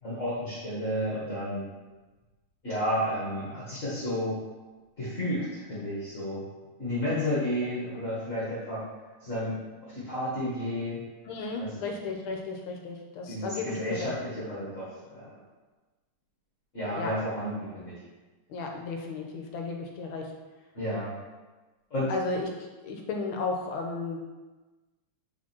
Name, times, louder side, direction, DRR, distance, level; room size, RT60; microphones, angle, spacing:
voice 1, 0.0-1.7 2.6-4.4 5.0-6.5 6.8-8.8 9.2-11.0 11.6-11.7 13.3-15.4 16.7-18.0 20.7-21.1 21.9-22.1, equal, 35° left, -10 dB, 1.9 m, -32 dB
voice 2, 11.2-14.1 16.9-17.1 18.5-20.3 22.1-24.2, left 3 dB, 75° left, 2 dB, 1.7 m, -34 dB
5.0 x 4.3 x 6.0 m, 1.2 s
omnidirectional pair, 2.4 m